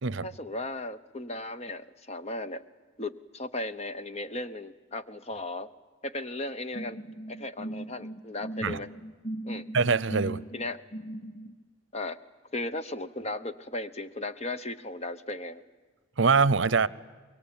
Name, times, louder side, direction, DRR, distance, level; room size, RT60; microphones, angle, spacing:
voice 1, 0.2-2.6 3.0-5.7 6.0-7.0 7.3-8.9 9.4-9.7 10.5-10.8 11.9-12.2 12.5-15.6, left 2 dB, 30° left, 11 dB, 0.9 m, -36 dB
sound 1, 6.7-11.5, right 1 dB, 75° left, 1.2 m, -38 dB
voice 2, 9.7-10.4 16.2-16.9, right 4 dB, 60° right, 20 dB, 0.7 m, -23 dB
25.5 x 22.0 x 9.0 m, 1.4 s
head